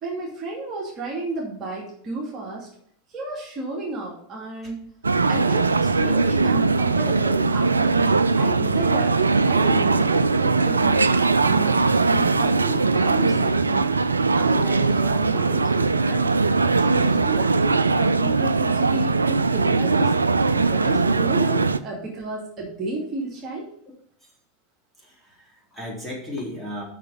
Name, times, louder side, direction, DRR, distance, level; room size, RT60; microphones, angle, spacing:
voice 1, 0.0-2.7 3.1-4.9 5.3-9.2 9.5-13.9 14.3-16.4 16.7-20.1 20.5-23.7, right 2 dB, 35° right, -3 dB, 2.6 m, -32 dB
sound 1, 5.0-21.8, right 3 dB, 85° right, 0.4 m, -20 dB
voice 2, 25.0-26.8, left 1 dB, ahead, -4 dB, 3.7 m, -35 dB
6.6 x 6.1 x 6.9 m, 0.67 s
figure-of-eight pair, 85°, 0 cm